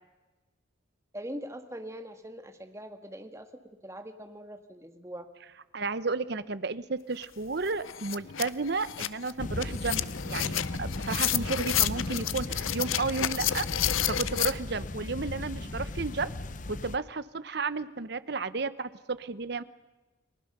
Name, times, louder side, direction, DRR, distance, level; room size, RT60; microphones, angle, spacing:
voice 1, 1.1-3.5 3.8-5.3, equal, 15° right, 6 dB, 1.7 m, -42 dB
voice 2, 5.7-13.7 14.1-16.3 16.7-19.6, right 4 dB, 55° right, 15 dB, 0.8 m, -33 dB
sound 1, 7.2-7.3 7.6-14.5, left 12 dB, 85° left, 0.7 m, -31 dB
sound 2, 9.4-17.0, left 2 dB, 40° left, 0.8 m, -36 dB
30.0 x 19.5 x 6.7 m, 1.1 s
head